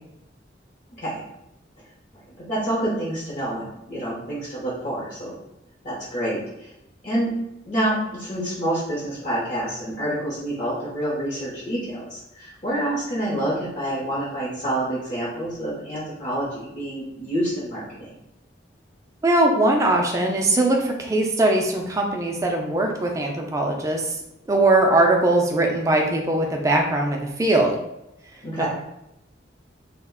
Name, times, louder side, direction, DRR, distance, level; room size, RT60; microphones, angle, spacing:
voice 1, 2.5-5.4 5.8-6.7 7.0-7.3 7.6-18.1 28.4-28.7, right 1 dB, 45° left, -7 dB, 0.7 m, -27 dB
voice 2, 19.2-24.2 24.5-27.8 28.6-28.7, right 2 dB, 15° right, 1 dB, 0.3 m, -20 dB
2.3 x 2.1 x 3.5 m, 0.86 s
head